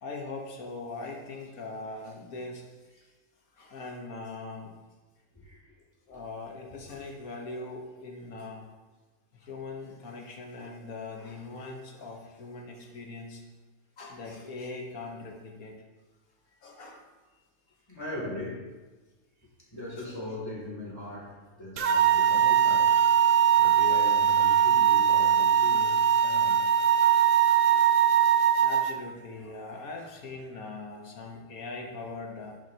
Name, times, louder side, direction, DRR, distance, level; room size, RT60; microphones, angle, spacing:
voice 1, 0.0-2.7 3.5-4.8 6.1-8.7 9.4-13.4 14.0-15.8 16.6-17.1 21.9-22.1 22.9-23.4 25.8-26.2 27.6-28.2 28.6-32.6, left 3 dB, 70° left, 1 dB, 1.8 m, -41 dB
voice 2, 5.3-5.7 6.1-6.2 6.9-7.0 17.9-18.7 19.7-23.0 23.6-26.7, left 2 dB, 15° left, -5 dB, 3.2 m, -39 dB
sound 1, 21.8-28.9, right 9 dB, 65° right, 1.1 m, -21 dB
11.5 x 8.1 x 3.0 m, 1.2 s
omnidirectional pair, 1.6 m